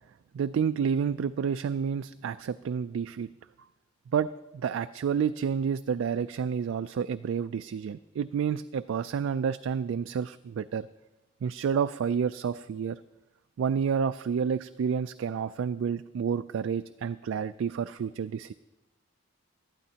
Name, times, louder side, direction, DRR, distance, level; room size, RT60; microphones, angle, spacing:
voice 1, 0.3-3.3 4.1-4.3 4.5-10.9 11.4-13.0 13.6-18.5, right 7 dB, 80° right, 11 dB, 0.3 m, -29 dB
18.0 x 12.0 x 2.8 m, 1.0 s
head